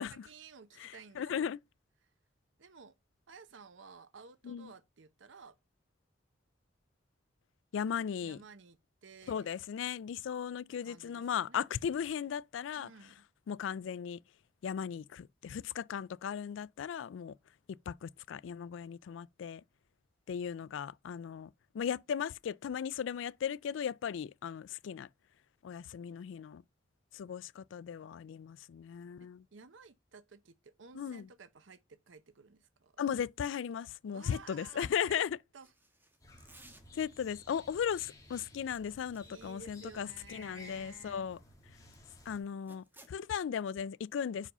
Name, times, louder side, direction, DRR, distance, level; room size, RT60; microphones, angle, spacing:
voice 1, 0.1-1.5 2.6-3.0 3.3-5.6 8.2-9.5 10.8-11.7 12.7-13.3 29.2-33.1 34.1-35.3 35.5-35.7 39.2-41.3, right 5 dB, 80° right, 0.7 m, -54 dB
voice 2, 0.8-1.6 4.4-4.7 7.7-8.4 9.3-12.9 13.5-14.2 14.6-17.3 17.9-19.6 20.3-21.5 21.7-25.1 25.6-26.6 27.1-29.4 30.9-31.3 33.0-35.4 36.9-41.4 42.3-44.5, left 8 dB, 75° left, 0.3 m, -37 dB
sound 1, 35.6-37.2 37.8-42.3 42.6-43.2, right 2 dB, 10° right, 1.2 m, -61 dB
sound 2, 36.2-42.4, left 2 dB, 20° left, 1.9 m, -56 dB
5.4 x 4.9 x 5.5 m
head